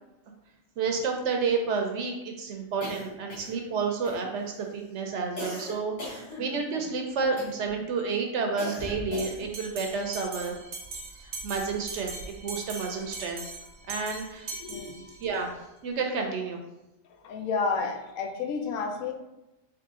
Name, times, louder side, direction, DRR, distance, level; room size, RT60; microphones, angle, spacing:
voice 1, 0.8-10.6 11.2-13.4 13.9-14.5 15.2-15.5 15.8-16.6, right 4 dB, 70° right, 3 dB, 0.8 m, -30 dB
sound 1, 2.8-3.7 4.0-4.6 5.4-6.8 7.4-7.8 8.6-9.6, left 1 dB, 65° left, 1.6 m, -39 dB
Bell, 9.2-15.4, right 3 dB, 90° right, 1.2 m, -41 dB
voice 2, 14.6-14.9 17.2-19.1, left 4 dB, 80° left, 3 dB, 1.0 m, -30 dB
3.8 x 3.0 x 3.6 m, 0.97 s
omnidirectional pair, 1.3 m